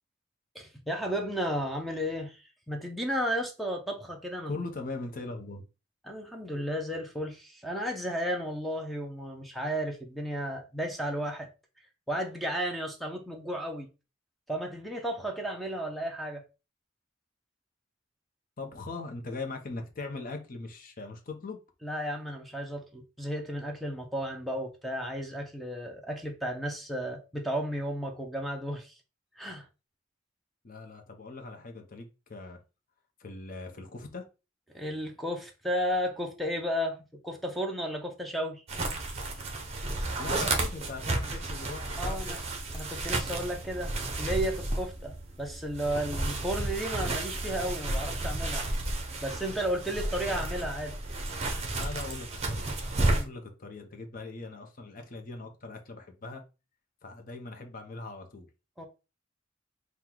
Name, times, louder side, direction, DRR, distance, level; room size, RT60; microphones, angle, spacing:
voice 1, 0.5-4.6 6.0-11.5 12.1-13.9 14.5-16.4 21.8-28.9 29.4-29.7 34.7-37.0 37.2-38.6 42.0-42.4 42.7-48.7 49.2-50.9 53.0-53.3 58.8-58.9, equal, ahead, 0.6 m, -33 dB
voice 2, 4.5-5.6 18.6-21.6 30.6-32.6 33.2-34.3 40.2-42.4 51.7-56.4 57.0-58.5, left 3 dB, 45° left, 0.7 m, -40 dB
sound 1, 38.7-53.2, right 2 dB, 30° right, 0.8 m, -32 dB
3.8 x 2.3 x 4.4 m
head